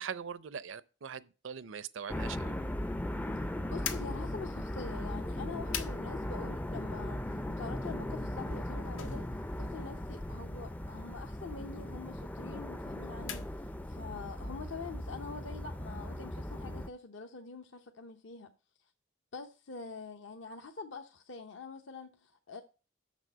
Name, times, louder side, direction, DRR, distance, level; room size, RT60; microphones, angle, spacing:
voice 1, 0.0-2.5, right 7 dB, 75° right, 0.6 m, -41 dB
sound 1, 2.1-16.9, left 1 dB, 10° left, 0.4 m, -38 dB
voice 2, 3.7-9.3 9.6-18.5 19.3-22.6, left 4 dB, 65° left, 0.8 m, -45 dB
sound 2, 3.8-14.1, left 7 dB, 90° left, 1.1 m, -47 dB
6.9 x 6.3 x 7.6 m
head